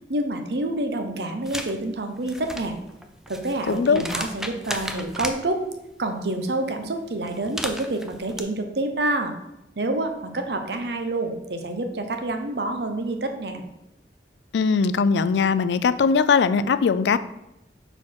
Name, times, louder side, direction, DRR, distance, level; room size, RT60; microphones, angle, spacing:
voice 1, 0.1-2.8 3.3-5.6 6.0-9.3 9.8-13.6, right 2 dB, 70° right, 6 dB, 0.8 m, -28 dB
sound 1, 1.5-1.7 2.2-5.4 7.3-8.4, equal, 5° right, 0.4 m, -34 dB
voice 2, 3.7-4.0 14.5-17.2, left 5 dB, 80° left, 14 dB, 0.3 m, -20 dB
4.5 x 4.3 x 5.8 m, 0.89 s
head